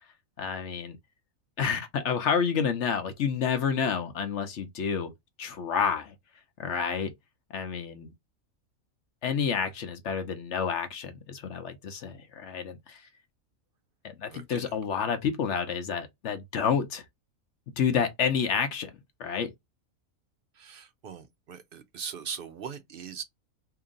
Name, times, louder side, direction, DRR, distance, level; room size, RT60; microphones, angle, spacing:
voice 1, 0.4-1.0 1.6-5.1 5.4-6.1 6.6-7.1 7.5-8.1 9.2-13.0 14.0-17.0 17.8-18.9 19.2-19.5, left 6 dB, 60° left, 1.0 m, -29 dB
voice 2, 14.3-14.7 20.5-23.2, right 7 dB, 65° right, 0.5 m, -40 dB
2.8 x 2.7 x 3.6 m
omnidirectional pair, 1.5 m